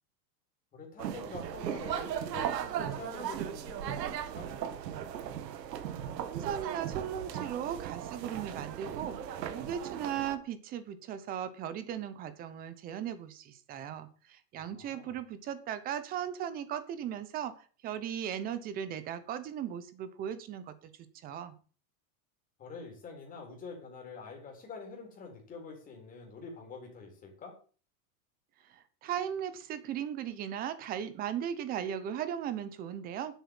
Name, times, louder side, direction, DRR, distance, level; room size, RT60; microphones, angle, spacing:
voice 1, 0.7-4.5 14.5-15.2 22.6-27.6, left 4 dB, 15° left, 1 dB, 3.9 m, -46 dB
sound 1, 1.0-10.4, right 9 dB, 85° right, 1.9 m, -37 dB
voice 2, 6.3-21.5 28.7-33.4, right 9 dB, 20° right, 13 dB, 0.8 m, -37 dB
10.0 x 8.3 x 7.1 m, 0.39 s
supercardioid pair, 170°, 48 cm